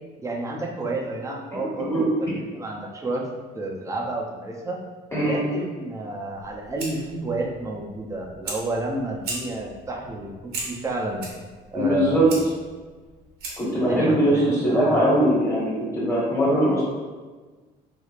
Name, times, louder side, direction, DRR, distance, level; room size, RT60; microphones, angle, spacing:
voice 1, 0.2-3.2 3.5-4.8 5.2-11.2 11.7-12.5 13.7-15.1, right 2 dB, 20° right, -1 dB, 0.5 m, -30 dB
voice 2, 1.5-2.0 5.1-5.4 11.7-12.3 13.6-16.8, equal, 15° left, -7 dB, 1.5 m, -21 dB
Fire, 6.3-13.8, right 2 dB, 75° right, 0.9 m, -38 dB
3.2 x 3.1 x 2.4 m, 1.4 s
cardioid pair, 110°, 17 cm